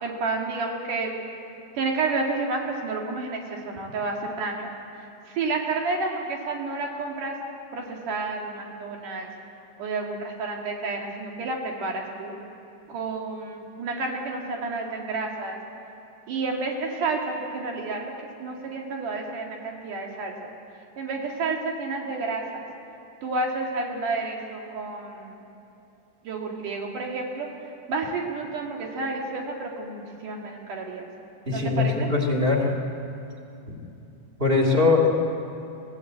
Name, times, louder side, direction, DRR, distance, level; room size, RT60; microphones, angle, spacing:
voice 1, 0.0-1.1 1.8-4.7 5.3-7.3 7.7-9.3 9.8-12.3 12.9-15.6 16.3-18.1 18.4-20.5 21.0-22.7 23.2-25.4 26.2-27.5 27.9-31.1 31.5-32.1 34.6-35.1, right 3 dB, 75° right, 0 dB, 3.6 m, -30 dB
voice 2, 31.5-32.7 33.7-33.8 34.4-35.1, left 4 dB, 20° right, 0 dB, 2.4 m, -21 dB
22.5 x 15.5 x 8.1 m, 2.8 s
omnidirectional pair, 3.7 m